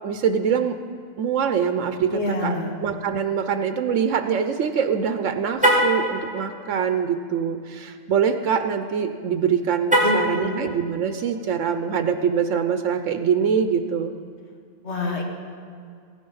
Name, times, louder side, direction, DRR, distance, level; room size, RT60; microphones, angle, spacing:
voice 1, 0.0-0.8 1.2-2.5 2.8-14.1, right 7 dB, 90° right, 8 dB, 1.0 m, -24 dB
voice 2, 2.1-2.7 10.0-10.7 14.8-15.2, left 1 dB, 60° left, 0 dB, 2.0 m, -26 dB
Car, 5.5-6.0 9.8-10.3, equal, 5° right, 2.5 m, -19 dB
15.5 x 10.0 x 5.6 m, 2.3 s
omnidirectional pair, 1.3 m